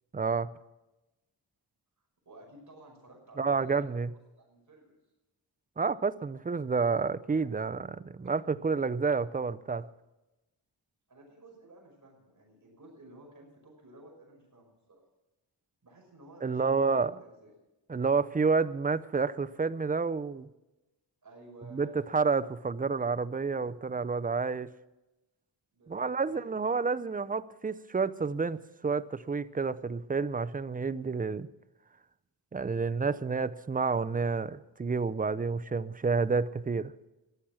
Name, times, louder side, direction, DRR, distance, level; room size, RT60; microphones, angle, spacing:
voice 1, 0.1-0.5 3.4-4.1 5.8-9.9 16.4-17.1 17.9-20.5 21.7-24.7 25.9-31.5 32.5-36.9, right 4 dB, 20° right, 0.5 m, -29 dB
voice 2, 2.3-4.0 4.4-5.0 11.1-15.0 15.8-17.5 21.2-22.1 25.7-26.5, right 1 dB, 40° right, 5.6 m, -54 dB
14.5 x 11.5 x 6.2 m
cardioid pair, 85°, 44 cm